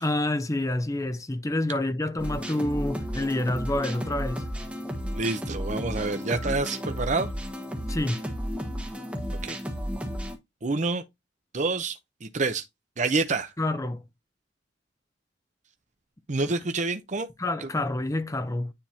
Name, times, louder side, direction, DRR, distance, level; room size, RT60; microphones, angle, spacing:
voice 1, 0.0-4.5 7.9-8.2 13.6-14.0 16.4-16.5 17.4-18.7, left 1 dB, 20° left, 0.6 m, -28 dB
sound 1, 2.2-10.4, equal, 5° right, 1.5 m, -33 dB
voice 2, 5.1-7.3 9.3-9.6 10.6-11.0 11.5-12.6 13.0-13.5 16.3-17.3 17.6-17.7, right 3 dB, 40° right, 0.7 m, -28 dB
9.8 x 3.5 x 2.8 m
head